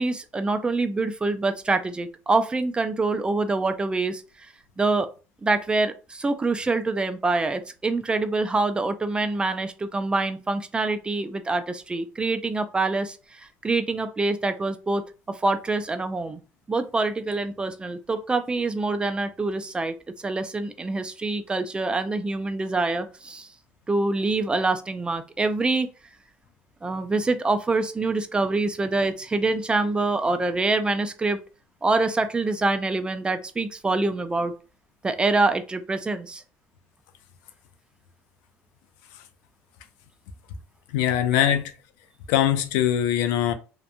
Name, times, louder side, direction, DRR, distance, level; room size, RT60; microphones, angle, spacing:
voice 1, 0.0-4.2 4.8-5.1 5.4-13.2 13.6-16.4 16.7-19.9 20.2-23.5 23.9-25.9 26.8-31.4 31.8-34.5 35.0-36.4 41.3-41.5, right 3 dB, 15° right, 0.3 m, -25 dB
voice 2, 40.9-41.7 42.3-43.5, left 11 dB, 90° left, 0.4 m, -22 dB
2.8 x 2.1 x 2.5 m
supercardioid pair, 100°, 5 cm